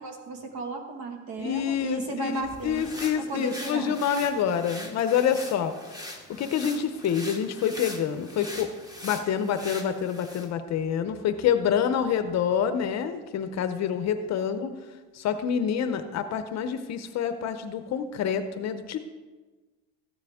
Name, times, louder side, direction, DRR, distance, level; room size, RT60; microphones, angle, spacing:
voice 1, 0.0-4.0, right 3 dB, 60° right, 3 dB, 1.9 m, -35 dB
voice 2, 1.4-5.7 6.4-8.7 9.0-14.7 15.1-19.0, left 8 dB, 40° left, 9 dB, 0.6 m, -27 dB
sound 1, 2.3-10.5, left 1 dB, 10° right, 1.0 m, -42 dB
14.0 x 9.4 x 3.5 m, 1.3 s
cardioid pair, 155°, 43 cm